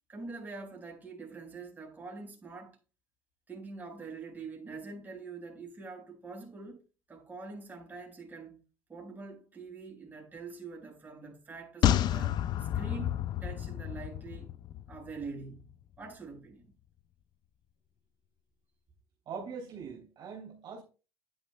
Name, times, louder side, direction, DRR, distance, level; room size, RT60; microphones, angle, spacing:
voice 1, 0.1-2.8 3.5-6.8 7.1-8.6 8.9-13.1 13.4-14.6 14.9-16.7, right 4 dB, 15° right, 4.6 m, -45 dB
sound 1, 11.8-15.3 15.6-15.7, left 11 dB, 45° left, 0.4 m, -30 dB
voice 2, 19.2-20.8, right 5 dB, 45° right, 3.0 m, -42 dB
10.5 x 9.8 x 2.2 m
supercardioid pair, 120°, 10 cm